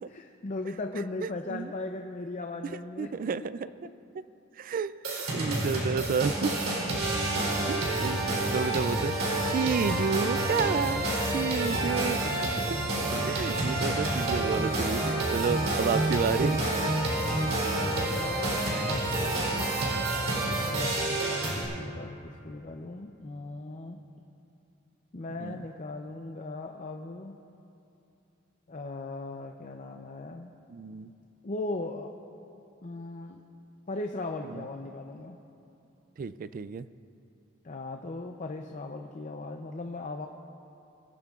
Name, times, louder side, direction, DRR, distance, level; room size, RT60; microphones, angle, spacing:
voice 1, 0.1-3.1 3.4-3.5 6.8-7.5 11.7-11.8 13.0-13.3 16.9-19.8 20.4-24.0 25.1-27.4 28.7-30.5 31.4-32.1 32.8-33.4 33.9-35.4 37.6-40.3, left 2 dB, 35° left, 4 dB, 0.6 m, -38 dB
voice 2, 1.2-1.7 3.0-3.7 4.6-6.5 7.7-9.1 9.4-12.8 13.3-16.6 18.7-19.3 25.4-25.6 30.7-31.1 34.5-34.6 36.2-36.9, right 5 dB, 40° right, 15 dB, 0.3 m, -31 dB
sound 1, 5.0-21.6, right 2 dB, 90° right, 3.5 m, -28 dB
23.0 x 12.5 x 2.4 m, 2.8 s
head